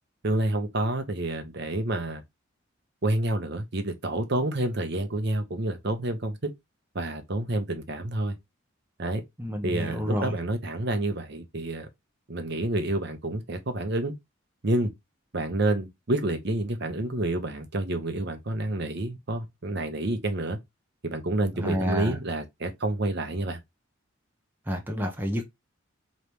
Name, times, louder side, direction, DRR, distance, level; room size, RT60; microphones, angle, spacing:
voice 1, 0.2-2.2 3.0-6.4 6.9-8.4 9.0-9.2 9.6-11.9 12.3-14.1 14.6-14.9 15.3-20.6 21.0-23.6, right 1 dB, 55° right, 0.8 m, -28 dB
voice 2, 9.4-10.3 21.6-22.2 24.7-25.4, equal, 10° right, 0.7 m, -29 dB
4.0 x 3.1 x 3.4 m
head